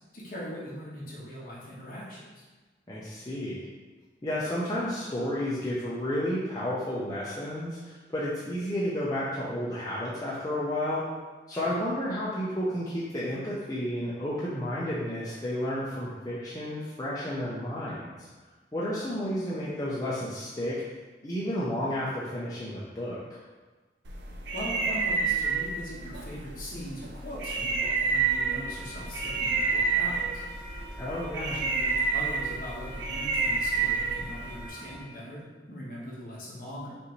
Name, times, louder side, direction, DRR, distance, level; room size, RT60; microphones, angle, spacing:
voice 1, 0.1-2.4 11.5-11.8 24.5-30.5 31.3-37.0, equal, 50° left, -6 dB, 1.1 m, -40 dB
voice 2, 2.9-3.6 4.2-11.0 11.5-18.3 18.7-20.8 21.2-23.2 31.0-31.6, equal, 20° left, -8 dB, 0.6 m, -31 dB
sound 1, 24.1-34.7, right 4 dB, 75° right, 0.5 m, -29 dB
sound 2, 28.1-35.0, right 1 dB, 35° right, 1.1 m, -44 dB
5.3 x 2.6 x 3.1 m, 1.3 s
head